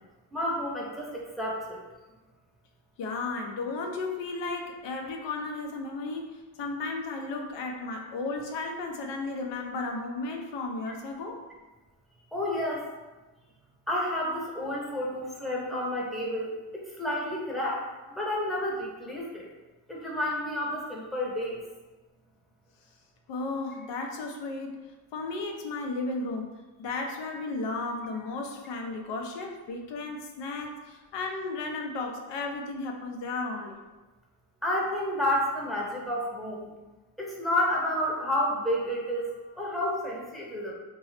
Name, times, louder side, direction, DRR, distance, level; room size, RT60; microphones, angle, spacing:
voice 1, 0.3-1.8 10.9-11.0 12.3-12.9 13.9-19.5 19.9-21.6 34.6-36.7 37.2-39.3 39.6-40.7, left 1 dB, ahead, -5 dB, 0.7 m, -30 dB
voice 2, 3.0-11.4 23.3-24.8 25.1-26.5 26.8-33.8, left 3 dB, 70° left, 2 dB, 0.6 m, -34 dB
2.8 x 2.2 x 3.2 m, 1.2 s
cardioid pair, 85°, 46 cm